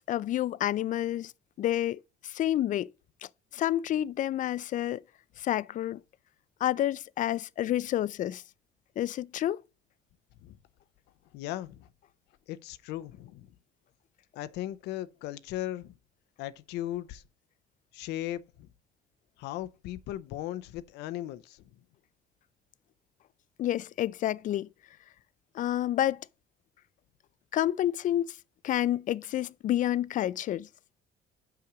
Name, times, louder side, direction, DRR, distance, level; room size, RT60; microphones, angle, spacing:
voice 1, 0.0-1.3 1.6-2.9 3.5-5.0 5.4-6.0 6.6-8.4 9.0-9.6 23.6-24.7 25.5-26.2 27.5-28.4 28.6-30.7, left 12 dB, 50° left, 0.4 m, -29 dB
voice 2, 11.3-11.9 12.5-13.5 14.4-15.9 16.4-17.2 17.9-18.7 19.4-21.6, left 14 dB, 90° left, 0.6 m, -37 dB
5.9 x 5.8 x 4.9 m
cardioid pair, 110°, 17 cm